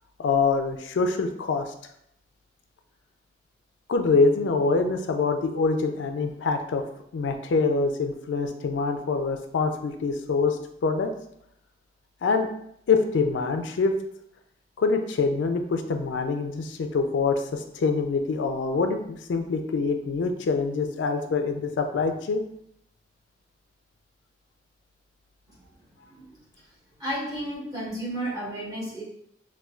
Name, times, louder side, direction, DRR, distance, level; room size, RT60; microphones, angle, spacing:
voice 1, 0.2-1.7 3.9-6.8 7.1-10.6 10.8-11.1 12.2-12.5 12.9-14.0 14.8-22.4, left 4 dB, 85° left, 6 dB, 0.4 m, -25 dB
voice 2, 26.1-26.4 27.0-29.0, right 1 dB, 20° right, -8 dB, 1.3 m, -32 dB
4.2 x 2.3 x 2.3 m, 0.73 s
head